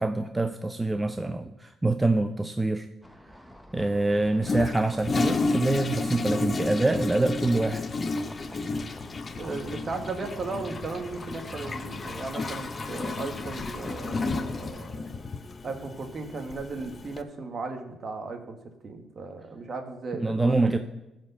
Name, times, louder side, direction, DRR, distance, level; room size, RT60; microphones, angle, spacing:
voice 1, 0.0-2.9 3.7-7.8 20.1-20.8, right 2 dB, 15° right, 8 dB, 0.6 m, -25 dB
sound 1, 3.0-14.8, equal, ahead, 1.0 m, -48 dB
Toilet flush, 4.4-17.2, left 3 dB, 35° left, 0.7 m, -32 dB
voice 2, 9.4-15.2 15.6-20.8, right 3 dB, 45° right, 6 dB, 1.8 m, -36 dB
15.0 x 5.3 x 7.0 m, 0.94 s
cardioid pair, 90°, 0 cm